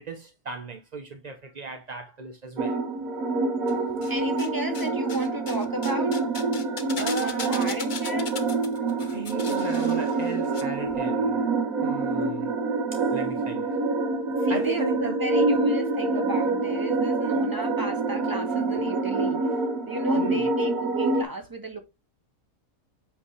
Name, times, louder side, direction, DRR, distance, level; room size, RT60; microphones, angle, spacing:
voice 1, 0.0-2.8 7.0-7.8 9.1-11.4 11.8-12.5 12.9-13.8 14.5-15.2 20.2-20.5, right 4 dB, 40° right, 0.6 m, -35 dB
sound 1, 2.6-21.2, right 3 dB, 60° right, 1.7 m, -26 dB
sound 2, 3.7-4.5 4.7-10.6 10.9-11.0, left 6 dB, 40° left, 0.7 m, -39 dB
voice 2, 4.1-6.2 6.9-8.4 14.2-19.4 19.9-21.8, right 1 dB, 15° right, 1.9 m, -34 dB
8.1 x 5.1 x 3.2 m
omnidirectional pair, 1.7 m